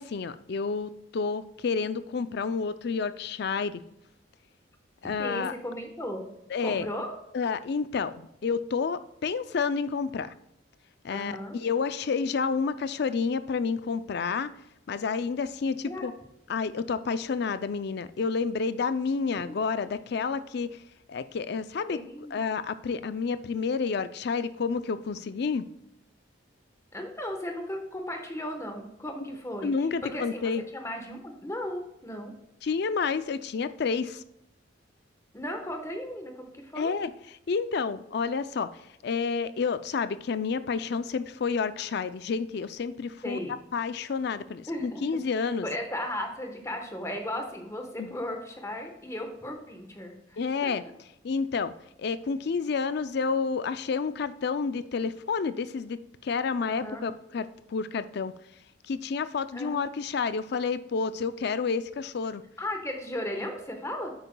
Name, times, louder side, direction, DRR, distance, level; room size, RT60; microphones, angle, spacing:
voice 1, 0.0-3.8 5.0-5.5 6.5-6.9 7.3-10.3 11.0-14.5 14.9-16.1 16.5-20.8 21.1-22.0 22.3-25.6 29.2-29.4 29.6-30.6 32.6-34.2 36.8-38.7 39.0-43.4 43.7-45.7 48.0-48.2 50.4-50.8 51.2-51.7 52.0-58.3 58.9-62.4, left 5 dB, 55° left, 13 dB, 0.4 m, -30 dB
voice 2, 5.2-6.3 6.6-7.1 11.1-11.5 15.8-16.1 19.3-19.6 21.9-22.4 26.9-29.7 30.0-32.3 35.3-36.9 43.2-43.6 44.7-45.0 45.4-50.7 56.6-57.0 59.5-59.8 62.6-64.1, left 1 dB, 15° left, 4 dB, 1.1 m, -36 dB
10.0 x 8.0 x 2.3 m, 0.81 s
head